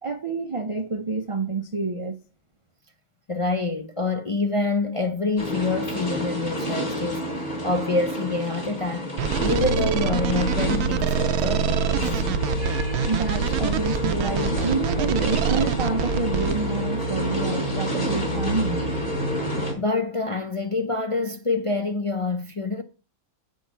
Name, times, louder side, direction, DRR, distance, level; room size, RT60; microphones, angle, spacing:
voice 1, 0.0-2.1 12.8-18.9, right 3 dB, 55° right, 0.3 m, -28 dB
voice 2, 3.3-9.1 9.4-12.2 19.8-22.8, left 3 dB, 40° left, 0.4 m, -26 dB
sound 1, 5.4-19.7, equal, 85° left, 4.2 m, -30 dB
sound 2, 9.2-16.5, right 9 dB, 90° right, 1.1 m, -26 dB
sound 3, 9.5-19.7, equal, 30° right, 2.2 m, -30 dB
8.2 x 6.3 x 5.5 m
omnidirectional pair, 1.5 m